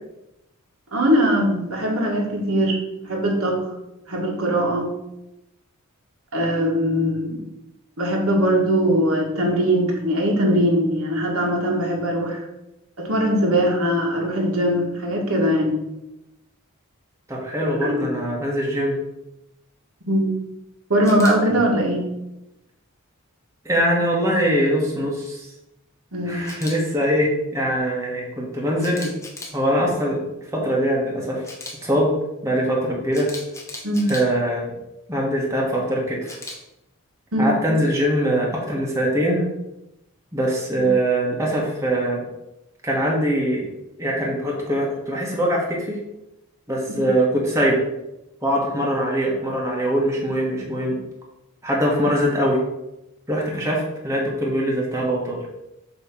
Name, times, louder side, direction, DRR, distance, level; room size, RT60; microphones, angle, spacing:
voice 1, 0.9-2.8 3.0-3.7 4.1-4.9 6.3-7.4 8.0-12.4 13.0-15.8 17.8-18.2 20.1-20.3 20.9-22.1 26.1-26.5 33.8-34.1 37.3-37.5 47.0-47.1, equal, 75° right, -1 dB, 1.7 m, -21 dB
voice 2, 17.3-18.9 23.6-25.5 26.3-29.1 29.5-30.2 30.5-31.4 31.8-32.1 32.4-33.3 34.1-34.7 35.1-36.4 37.4-39.5 40.3-42.2 42.8-43.6 44.0-46.0 46.7-47.8 48.4-51.0 51.6-52.6 53.3-55.4, equal, 15° right, -3 dB, 1.2 m, -22 dB
Camera, 21.0-21.3 26.4-26.7 28.8-29.5 31.4-31.7 33.1-34.2 36.3-36.6, left 2 dB, 15° left, 1.0 m, -36 dB
7.0 x 3.2 x 6.0 m, 0.91 s
head